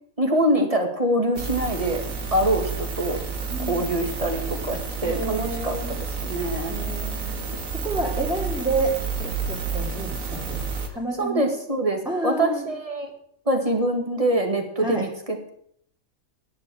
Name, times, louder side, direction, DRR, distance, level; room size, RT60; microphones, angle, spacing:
voice 1, 0.2-2.0 2.3-3.2 3.7-6.7 11.2-13.1 13.5-15.5, right 1 dB, 25° right, 5 dB, 2.0 m, -24 dB
sound 1, 1.4-10.9, right 5 dB, 70° right, 2.1 m, -30 dB
voice 2, 3.5-3.9 5.0-6.0 6.6-10.6 10.9-11.5 12.0-12.7 14.8-15.1, right 2 dB, ahead, -6 dB, 2.9 m, -30 dB
10.5 x 8.4 x 8.6 m, 0.66 s
omnidirectional pair, 1.4 m